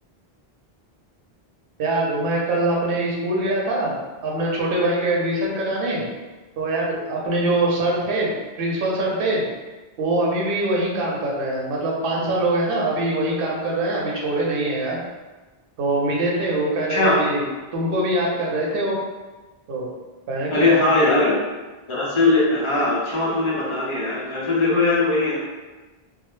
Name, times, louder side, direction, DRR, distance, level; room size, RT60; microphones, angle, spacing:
voice 1, 1.8-4.0 4.2-6.0 6.6-8.3 8.6-9.4 10.0-15.0 15.8-17.5 17.7-19.0 19.7-19.9 20.3-20.8, right 2 dB, 65° right, -3 dB, 0.8 m, -23 dB
voice 2, 16.9-17.2 20.5-21.3 21.9-25.4, left 2 dB, 40° left, -5 dB, 0.5 m, -20 dB
2.2 x 2.0 x 3.0 m, 1.2 s
omnidirectional pair, 1.0 m